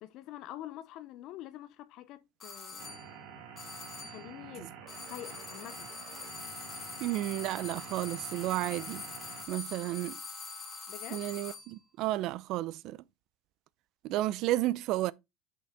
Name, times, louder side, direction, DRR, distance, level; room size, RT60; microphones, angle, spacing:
voice 1, 0.0-3.0 4.0-4.8 5.1-5.9 10.9-11.2, left 14 dB, 55° left, 0.4 m, -46 dB
sound 1, 2.4-3.1 3.6-4.3 4.9-11.7, left 4 dB, 25° left, 1.9 m, -44 dB
sound 2, 2.8-9.5, right 7 dB, 70° right, 1.8 m, -48 dB
voice 2, 7.0-9.0 9.5-10.2 11.1-13.0 14.0-15.1, right 15 dB, 55° right, 0.4 m, -32 dB
6.4 x 5.8 x 3.4 m
cardioid pair, 145°, 0 cm